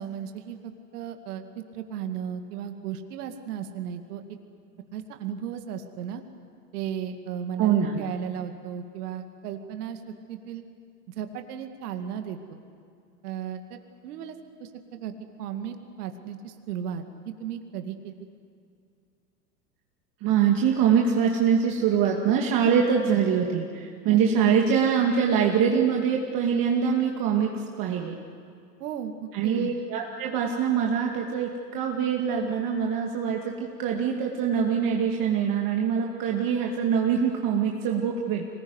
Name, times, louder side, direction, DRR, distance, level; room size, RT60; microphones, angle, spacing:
voice 1, 0.0-4.2 4.9-6.2 6.7-10.0 10.3-10.6 11.2-12.6 13.2-15.1 15.4-18.3 24.1-24.2 24.4-24.5 28.8-29.7, right 8 dB, 65° right, 6 dB, 2.2 m, -35 dB
voice 2, 7.6-8.0 20.2-28.2 29.3-38.5, right 7 dB, 45° right, 0 dB, 2.5 m, -24 dB
25.0 x 20.0 x 9.7 m, 2.4 s
hypercardioid pair, 95°, 49 cm